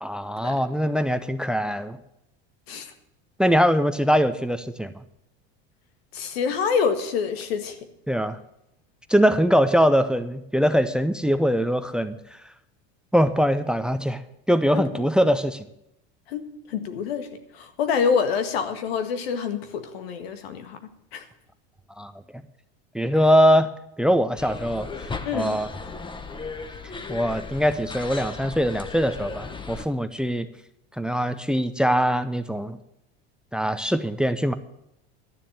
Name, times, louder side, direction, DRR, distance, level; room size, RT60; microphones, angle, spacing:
voice 1, 0.0-2.0 3.4-4.9 8.1-8.4 9.1-12.2 13.1-14.2 14.5-15.7 22.0-22.1 22.9-23.7 24.0-24.9 25.3-25.7 27.1-30.5 31.0-32.8 33.5-34.5, equal, 5° right, 12 dB, 0.7 m, -22 dB
voice 2, 6.1-7.8 14.7-14.9 16.3-17.3 17.5-20.8 21.1-21.2 25.3-25.6, left 6 dB, 85° left, 8 dB, 1.8 m, -26 dB
sound 1, 24.4-29.8, left 4 dB, 15° left, 1.0 m, -36 dB
12.5 x 7.2 x 8.9 m, 0.80 s
supercardioid pair, 110°, 30 cm